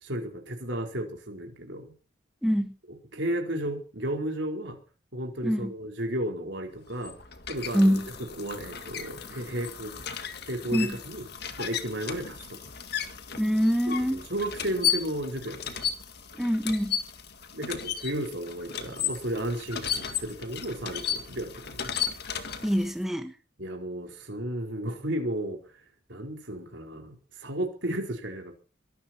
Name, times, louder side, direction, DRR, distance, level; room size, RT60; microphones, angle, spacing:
voice 1, 0.0-1.9 2.9-4.8 5.1-7.2 7.5-8.0 8.3-10.0 10.4-11.2 11.6-12.6 13.9-15.9 17.5-21.9 23.6-25.6 26.1-28.6, right 1 dB, 60° right, 2 dB, 4.5 m, -33 dB
voice 2, 2.4-2.7 5.4-5.7 7.7-8.1 10.7-10.9 13.4-14.2 16.4-17.0 22.6-23.3, equal, ahead, 6 dB, 1.5 m, -24 dB
sound 1, 6.8-23.0, left 8 dB, 55° left, 1.9 m, -35 dB
22.5 x 12.0 x 4.5 m, 0.36 s
head